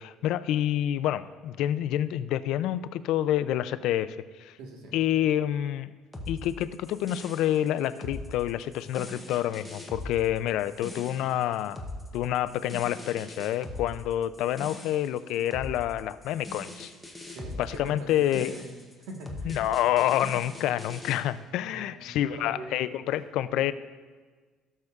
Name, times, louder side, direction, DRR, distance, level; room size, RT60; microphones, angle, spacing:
voice 1, 0.0-4.6 4.9-5.9 6.3-11.8 12.1-16.9 17.6-18.5 19.5-23.7, left 12 dB, 60° left, 14 dB, 0.3 m, -28 dB
voice 2, 4.6-4.9 11.1-11.3 17.2-18.1 18.4-18.7 19.1-19.6 21.7-22.7 23.1-23.2 23.5-23.6, right 1 dB, 80° right, 1 dB, 1.4 m, -42 dB
sound 1, 6.1-21.2, left 1 dB, 5° left, 0.7 m, -41 dB
16.5 x 6.5 x 2.4 m, 1.4 s
cardioid pair, 175°, 0 cm